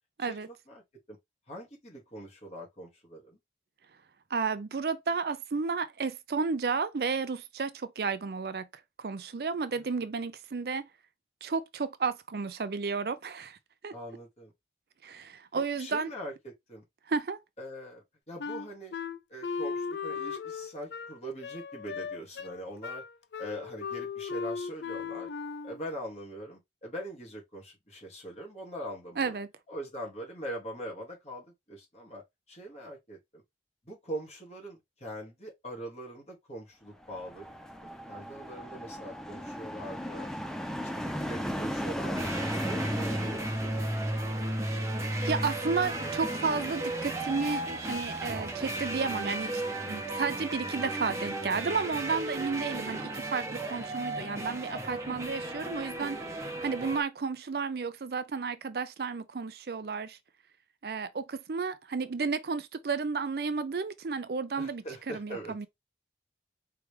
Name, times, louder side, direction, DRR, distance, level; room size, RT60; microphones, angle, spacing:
voice 1, 0.2-0.8 1.1-1.2 1.5-3.4 9.7-10.0 13.9-14.5 15.5-16.8 17.6-18.9 19.3-23.0 23.4-25.3 25.6-29.4 29.7-33.4 33.8-37.5 37.8-40.3 40.9-44.1 52.7-53.1 64.6-65.7, right 1 dB, 40° left, 2.3 m, -42 dB
voice 2, 4.3-8.7 9.0-10.9 11.4-13.6 13.8-13.9 15.0-16.1 17.1-17.4 29.2-29.5 45.2-49.5 49.9-56.2 56.6-60.2 60.8-65.7, right 5 dB, 60° right, 0.5 m, -32 dB
Wind instrument woodwind instrument, 18.4-25.9, left 5 dB, 75° left, 0.5 m, -37 dB
sound 1, 37.0-44.5, equal, 5° left, 0.6 m, -36 dB
sound 2, 42.1-57.0, right 1 dB, 15° right, 0.9 m, -34 dB
4.7 x 3.3 x 3.3 m
head